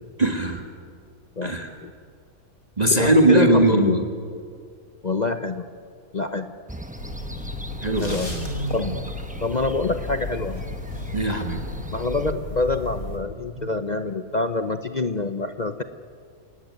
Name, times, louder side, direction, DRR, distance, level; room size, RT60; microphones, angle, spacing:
voice 1, 0.2-0.6 1.4-1.7 2.8-4.1 7.8-9.0 11.1-11.6 13.6-13.7, right 2 dB, 25° right, 3 dB, 1.9 m, -21 dB
voice 2, 2.9-4.0 5.0-5.7 6.1-6.5 8.0-8.3 8.7-8.9 9.4-10.6 11.9-15.8, left 3 dB, 35° left, 8 dB, 0.8 m, -26 dB
sound 1, 6.7-12.3, right 1 dB, 5° right, 0.9 m, -41 dB
sound 2, 7.0-13.2, left 2 dB, 65° left, 5.4 m, -34 dB
28.0 x 18.5 x 9.6 m, 2.2 s
omnidirectional pair, 1.6 m